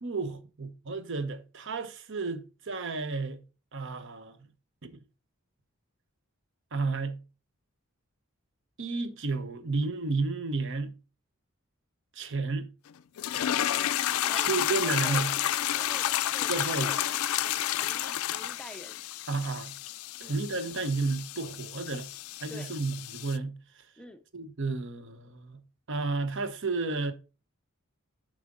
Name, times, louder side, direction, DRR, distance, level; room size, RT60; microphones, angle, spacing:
voice 1, 0.0-3.4 3.7-4.4 4.8-5.0 6.7-7.2 8.8-10.9 12.1-12.7 14.3-15.3 16.5-16.9 19.3-19.7 20.2-22.1 22.4-23.5 24.3-25.6 25.9-27.1, right 3 dB, 60° right, 0.9 m, -32 dB
sound 1, 13.2-23.4, left 12 dB, 85° left, 0.4 m, -31 dB
voice 2, 14.2-15.4 15.7-19.0 20.2-20.4 22.5-22.8 24.0-24.2, equal, 5° left, 0.5 m, -47 dB
7.5 x 5.0 x 3.7 m
head